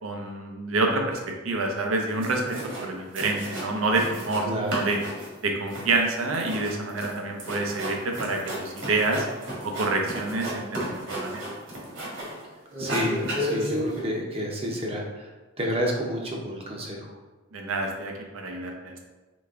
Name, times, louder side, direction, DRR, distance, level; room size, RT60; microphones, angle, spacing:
voice 1, 0.0-5.0 5.4-9.2 9.6-11.4 17.5-19.1, right 3 dB, 80° right, 2 dB, 0.7 m, -27 dB
sound 1, 2.2-2.9 3.1-4.4 4.7-12.4 12.7-14.0, equal, 65° right, 1.5 m, -33 dB
voice 2, 4.4-4.8 12.8-15.3 15.6-17.1, equal, 30° right, -1 dB, 0.7 m, -30 dB
4.0 x 3.3 x 3.5 m, 1.2 s
head